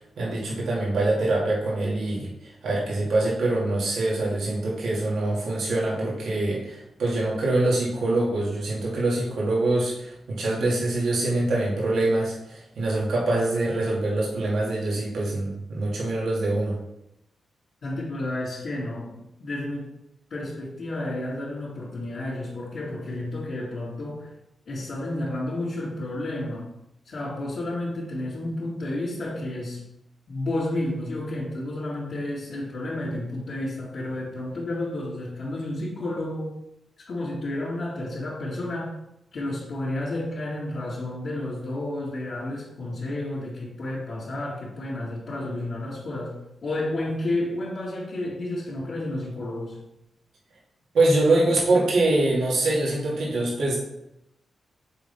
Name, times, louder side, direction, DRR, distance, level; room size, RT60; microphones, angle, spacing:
voice 1, 0.2-16.8 50.9-53.8, right 2 dB, 80° right, -4 dB, 2.3 m, -24 dB
voice 2, 17.8-19.9 20.3-24.3 24.7-26.7 27.1-29.8 30.3-36.6 37.1-39.0 39.3-46.3 46.6-49.8, left 1 dB, 65° left, -11 dB, 2.5 m, -31 dB
8.0 x 4.1 x 3.5 m, 0.82 s
cardioid pair, 75°, 0 cm